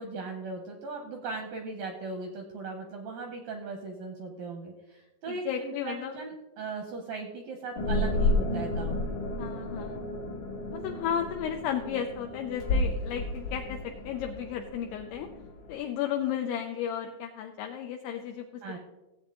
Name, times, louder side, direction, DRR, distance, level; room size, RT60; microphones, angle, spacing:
voice 1, 0.0-9.2 18.6-18.8, right 3 dB, 75° right, 3 dB, 2.1 m, -38 dB
voice 2, 5.3-6.2 9.4-10.0 10.7-15.3 15.7-18.8, left 9 dB, 80° left, 4 dB, 2.5 m, -34 dB
sound 1, 7.8-15.7, left 2 dB, 60° left, 2.2 m, -32 dB
16.0 x 8.0 x 3.7 m, 1.1 s
omnidirectional pair, 5.2 m